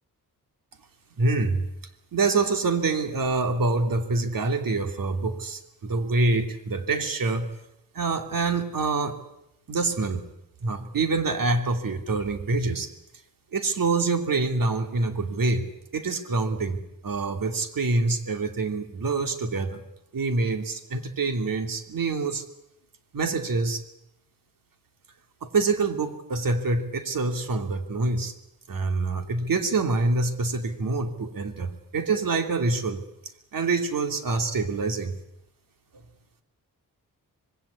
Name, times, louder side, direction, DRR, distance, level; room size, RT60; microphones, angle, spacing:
voice 1, 1.2-1.7 2.1-7.5 7.9-9.2 9.7-10.2 10.6-12.9 13.5-15.7 15.9-19.8 20.1-22.4 23.1-23.8 25.4-28.3 28.7-33.0 33.5-35.2, right 3 dB, 70° right, 6 dB, 2.9 m, -26 dB
25.5 x 21.0 x 8.5 m, 0.84 s
wide cardioid pair, 125°, 35 cm